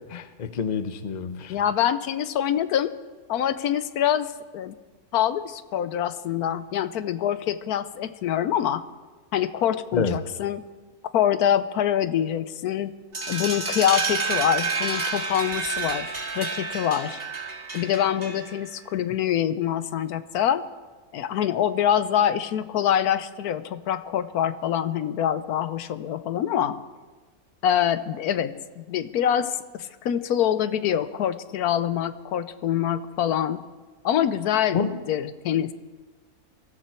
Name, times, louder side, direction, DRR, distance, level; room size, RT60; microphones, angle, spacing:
voice 1, 0.1-1.6 9.9-10.2 19.0-19.1 34.7-35.0, left 5 dB, 35° left, 10 dB, 0.8 m, -28 dB
voice 2, 1.5-2.9 3.3-4.8 5.1-8.8 9.3-10.6 11.1-12.9 13.3-17.2 17.7-20.7 21.1-26.8 27.6-33.6 34.0-34.8 35.1-35.7, left 10 dB, 80° left, 12 dB, 1.2 m, -25 dB
sound 1, 13.1-18.7, right 4 dB, 35° right, 2.3 m, -29 dB
22.5 x 14.0 x 4.5 m, 1.3 s
omnidirectional pair, 1.6 m